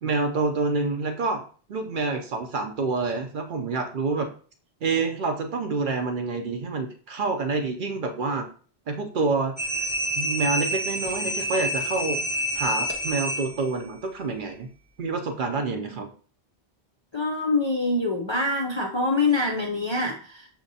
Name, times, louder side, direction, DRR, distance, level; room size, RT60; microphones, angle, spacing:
voice 1, 0.0-1.4 1.7-4.3 4.8-8.5 8.9-9.9 10.2-12.2 12.5-14.7 15.0-16.1, right 3 dB, 55° right, 5 dB, 0.7 m, -27 dB
sound 1, 9.6-13.8, equal, 15° right, 0.5 m, -28 dB
voice 2, 17.1-20.5, left 2 dB, 45° left, -1 dB, 0.3 m, -25 dB
5.9 x 2.8 x 2.7 m, 0.42 s
omnidirectional pair, 1.1 m